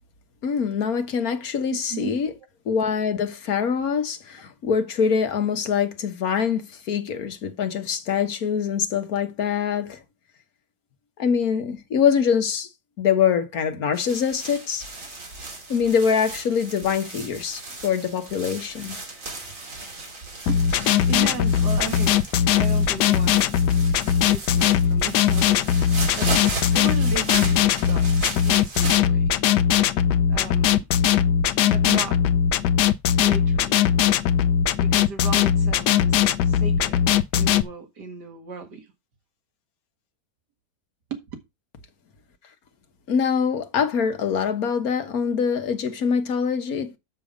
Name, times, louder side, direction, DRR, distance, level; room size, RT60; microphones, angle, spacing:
voice 1, 0.4-2.3 2.6-10.0 11.2-12.7 13.0-14.9 15.7-19.0 43.1-46.9, left 7 dB, 60° left, 1.6 m, -24 dB
sound 1, 13.9-29.0, right 2 dB, 50° right, 2.8 m, -36 dB
sound 2, 20.5-37.6, left 9 dB, 85° left, 1.3 m, -20 dB
voice 2, 21.1-22.2 22.5-23.6 24.3-26.3 26.7-29.3 30.3-30.9 31.6-32.2 33.2-33.8 34.7-37.1 37.3-38.9 41.1-41.2, right 5 dB, 90° right, 2.3 m, -36 dB
7.0 x 6.9 x 5.0 m
omnidirectional pair, 1.7 m